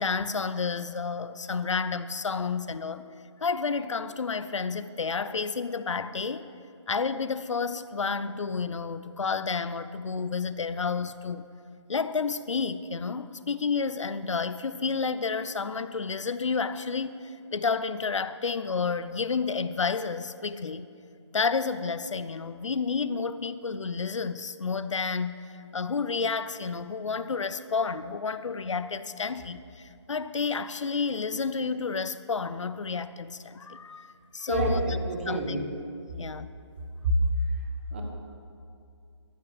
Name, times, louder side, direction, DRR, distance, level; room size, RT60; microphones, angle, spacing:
voice 1, 0.0-3.0 3.4-6.5 6.9-11.5 11.9-17.2 17.5-20.9 21.3-25.4 25.7-35.0 35.3-35.6 36.2-36.5, left 5 dB, 90° left, 13 dB, 0.6 m, -30 dB
voice 2, 34.5-35.7 37.0-37.1 37.9-38.0, right 2 dB, 25° right, 2 dB, 1.1 m, -28 dB
14.0 x 6.0 x 6.9 m, 2.4 s
hypercardioid pair, 170°, 15 cm